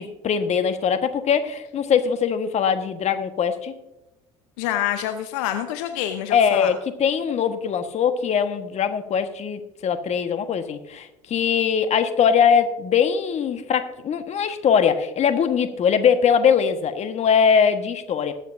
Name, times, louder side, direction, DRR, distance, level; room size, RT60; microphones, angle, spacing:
voice 1, 0.0-3.7 6.3-18.3, left 7 dB, 45° left, 9 dB, 1.4 m, -21 dB
voice 2, 4.6-6.7, left 11 dB, 70° left, 8 dB, 0.8 m, -27 dB
21.0 x 8.1 x 2.6 m, 0.96 s
hypercardioid pair, 65°, 16 cm